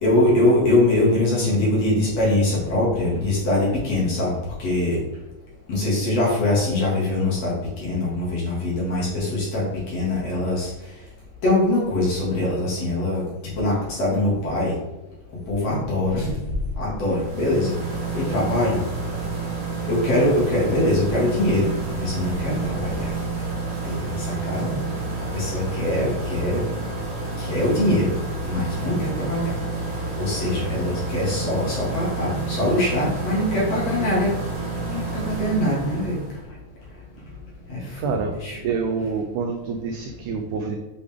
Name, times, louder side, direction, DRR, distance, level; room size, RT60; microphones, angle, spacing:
voice 1, 0.0-4.3 4.6-5.0 5.7-10.7 11.4-13.2 13.6-14.7 15.5-16.3 16.8-17.7 18.1-18.8 19.9-21.7 21.9-23.0 23.8-24.7 25.3-26.6 27.4-28.2 28.4-29.6 30.2-34.3 34.9-36.2 37.7-38.6 40.2-40.3, left 1 dB, 50° left, -6 dB, 3.0 m, -23 dB
sound 1, 17.0-36.4, right 3 dB, 50° right, 1.8 m, -29 dB
voice 2, 38.0-38.3 38.6-40.8, right 5 dB, 85° right, 4 dB, 1.8 m, -27 dB
8.6 x 4.8 x 3.5 m, 1.0 s
omnidirectional pair, 4.2 m